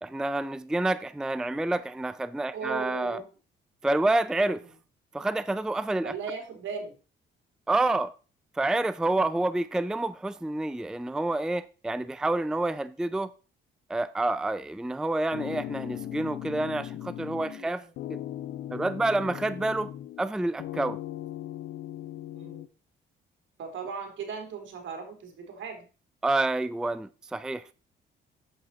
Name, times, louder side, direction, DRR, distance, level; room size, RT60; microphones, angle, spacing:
voice 1, 0.0-3.2 3.8-4.7 5.1-6.1 7.7-8.1 8.6-13.3 13.9-17.8 18.1-18.2 18.7-19.9 20.2-21.0 26.2-27.7, right 2 dB, 5° right, 0.4 m, -28 dB
voice 2, 2.5-3.3 6.0-6.9 17.5-17.9 22.3-22.7 23.6-25.8, right 5 dB, 70° right, 3.2 m, -37 dB
sound 1, 15.3-17.7 18.0-20.3 20.6-22.7, left 12 dB, 80° left, 0.6 m, -38 dB
8.7 x 7.7 x 4.1 m
cardioid pair, 90°, 20 cm